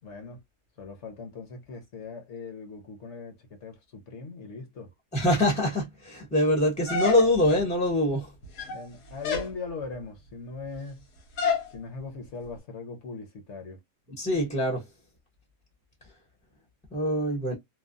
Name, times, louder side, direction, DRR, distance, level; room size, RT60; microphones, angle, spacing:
voice 1, 0.0-0.4 0.8-4.9 8.7-11.1 11.7-13.8, left 4 dB, 55° left, 1.0 m, -40 dB
voice 2, 5.1-8.3 14.2-14.8 16.9-17.5, left 1 dB, 5° left, 0.6 m, -24 dB
sound 1, 6.9-7.6 8.4-8.9 9.2-9.5 11.4-11.7, left 5 dB, 90° left, 1.4 m, -28 dB
3.2 x 2.0 x 2.4 m
omnidirectional pair, 1.7 m